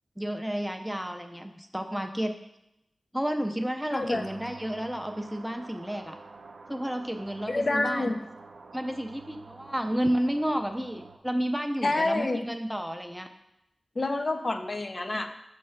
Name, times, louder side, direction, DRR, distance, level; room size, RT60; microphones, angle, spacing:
voice 1, 0.2-2.3 3.1-6.2 6.7-8.1 8.7-13.3, equal, 5° right, 6 dB, 0.5 m, -31 dB
voice 2, 3.9-4.2 7.5-8.2 11.8-12.5 14.0-15.3, left 2 dB, 45° left, 6 dB, 0.5 m, -28 dB
sound 1, 4.0-11.2, right 4 dB, 75° right, 0.5 m, -48 dB
6.3 x 3.2 x 5.7 m, 0.84 s
wide cardioid pair, 90°, 0 cm